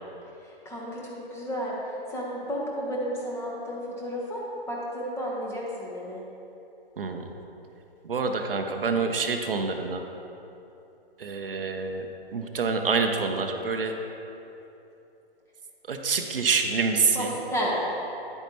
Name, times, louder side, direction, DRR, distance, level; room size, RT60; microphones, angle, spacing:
voice 1, 0.4-6.2 8.4-8.6 17.1-17.8, equal, 10° left, -4 dB, 1.3 m, -32 dB
voice 2, 7.0-7.3 8.0-10.0 11.2-12.0 12.3-13.9 15.9-17.3, right 4 dB, 65° right, 5 dB, 0.8 m, -26 dB
9.9 x 9.0 x 3.0 m, 2.9 s
figure-of-eight pair, 125°, 30 cm